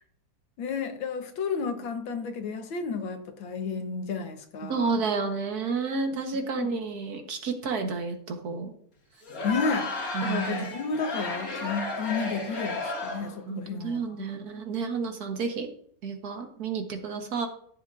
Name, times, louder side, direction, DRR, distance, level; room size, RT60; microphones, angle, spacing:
voice 1, 0.6-5.0 6.6-6.8 7.2-7.3 9.4-9.9 10.2-14.3, left 5 dB, 85° left, 6 dB, 1.9 m, -32 dB
voice 2, 4.7-8.7 10.1-10.7 13.5-15.7 16.0-17.5, right 4 dB, 55° right, 5 dB, 1.6 m, -30 dB
Crowd, 9.2-13.4, left 3 dB, 50° left, 2.2 m, -33 dB
14.0 x 7.9 x 2.5 m, 0.63 s
omnidirectional pair, 2.1 m